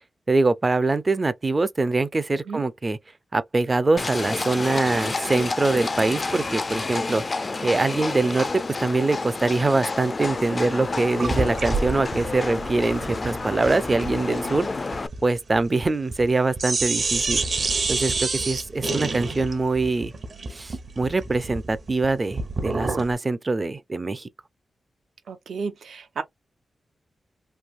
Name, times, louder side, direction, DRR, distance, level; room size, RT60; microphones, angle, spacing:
voice 1, 0.3-3.0 3.3-14.7 15.2-17.4 17.9-20.1 20.5-24.3, right 3 dB, 35° right, 0.4 m, -23 dB
Livestock farm animals working animals, 4.0-15.1, left 3 dB, 40° left, 0.3 m, -29 dB
sound 1, 11.2-16.3 16.6-23.1, right 3 dB, 55° right, 0.9 m, -28 dB
voice 2, 25.3-26.2, right 5 dB, 85° right, 0.7 m, -32 dB
3.2 x 2.6 x 2.4 m
cardioid pair, 85°, 0 cm